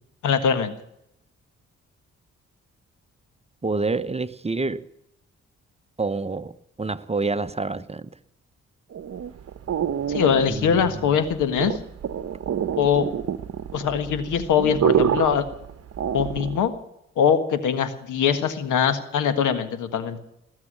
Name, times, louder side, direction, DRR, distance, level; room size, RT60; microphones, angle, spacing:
voice 1, 0.2-0.7 10.1-11.8 12.7-13.1 13.7-15.4 16.1-16.7 17.2-20.2, left 7 dB, 80° left, 10 dB, 1.6 m, -22 dB
voice 2, 3.6-4.8 6.0-8.1 10.5-11.2, right 3 dB, 20° right, 13 dB, 0.8 m, -28 dB
sound 1, 8.9-16.7, right 9 dB, 55° right, 0.9 m, -27 dB
19.5 x 7.4 x 10.0 m, 0.80 s
supercardioid pair, 55°, 30 cm